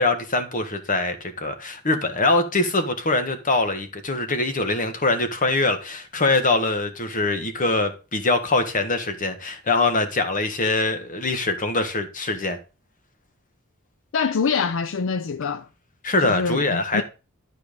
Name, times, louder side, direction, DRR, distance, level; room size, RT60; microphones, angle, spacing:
voice 1, 0.0-12.6 16.0-17.0, left 2 dB, 40° left, 1.5 m, -23 dB
voice 2, 14.1-15.7 16.2-17.0, left 5 dB, 65° left, 0.5 m, -25 dB
12.0 x 4.7 x 5.2 m
head